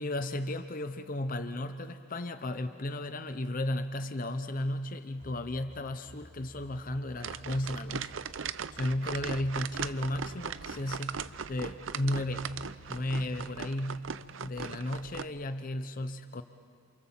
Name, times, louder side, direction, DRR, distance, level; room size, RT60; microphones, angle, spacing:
voice 1, 0.0-8.1 8.7-12.5 12.9-14.0 14.4-16.4, left 1 dB, 40° left, 9 dB, 0.7 m, -34 dB
sound 1, 5.2-13.6, equal, 40° right, 3.9 m, -54 dB
sound 2, 7.2-15.2, right 6 dB, 70° right, 0.6 m, -39 dB
29.0 x 28.0 x 7.4 m, 2.4 s
head